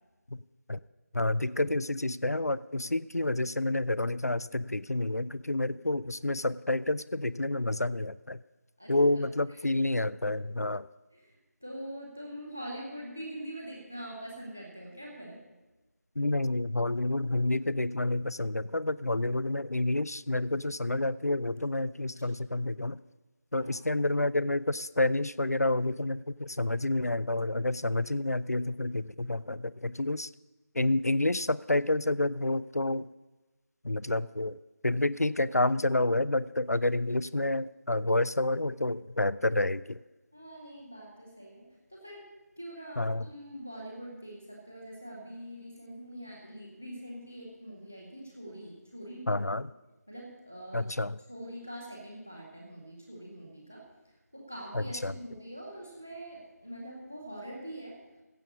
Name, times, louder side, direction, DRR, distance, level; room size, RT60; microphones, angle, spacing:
voice 1, 1.1-8.4 8.9-10.9 16.2-23.0 23.5-30.3 30.8-33.1 33.8-34.6 34.8-40.0 43.0-43.3 49.3-49.7 50.7-51.2 54.7-55.1, left 2 dB, 65° left, 19 dB, 0.5 m, -29 dB
voice 2, 8.8-9.2 9.5-9.6 11.1-15.4 23.5-23.8 40.3-41.6 41.9-42.3 42.6-49.5 50.1-50.9 51.3-58.0, right 1 dB, 5° right, -1 dB, 0.6 m, -44 dB
15.5 x 5.3 x 8.4 m, 1.1 s
figure-of-eight pair, 170°, 9 cm